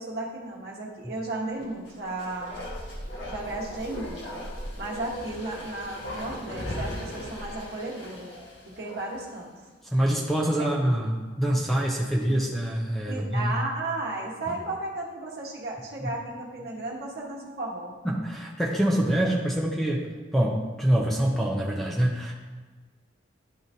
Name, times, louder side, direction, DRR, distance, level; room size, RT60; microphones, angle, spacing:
voice 1, 0.0-2.5 3.3-4.4 4.8-8.3 8.8-9.5 13.1-17.9, right 2 dB, 55° right, -2 dB, 1.2 m, -34 dB
Bark, 1.8-9.4 9.7-9.8, equal, 80° left, 1.7 m, -38 dB
voice 2, 9.9-13.5 14.5-14.6 16.0-16.1 18.0-22.3, right 1 dB, ahead, -2 dB, 0.6 m, -25 dB
10.5 x 3.8 x 2.7 m, 1.3 s
head